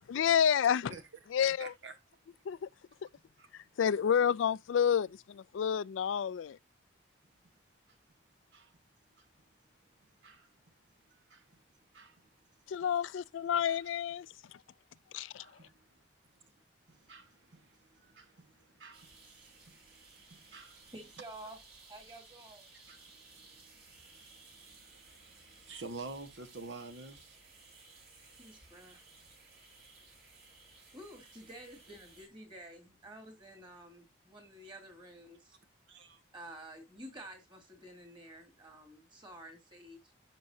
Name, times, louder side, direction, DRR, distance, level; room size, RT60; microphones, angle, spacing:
voice 1, 0.1-0.9 1.3-1.7 2.5-2.7 3.8-6.6 12.7-14.3 15.1-15.4, left 8 dB, 85° left, 0.3 m, -29 dB
voice 2, 1.6-1.9 8.5-8.7 9.2-9.3 10.2-10.5 11.3-11.6 11.9-12.2 13.7-13.8 15.4-15.8 16.9-20.9 22.9-27.4 35.9-36.2, right 3 dB, 75° right, 1.2 m, -50 dB
sound 1, 18.9-32.3, right 3 dB, 50° right, 4.0 m, -58 dB
voice 3, 20.9-21.6 21.9-22.6 28.3-29.0 30.9-35.6 36.3-40.2, right 1 dB, 25° right, 2.5 m, -51 dB
11.0 x 6.1 x 2.7 m
head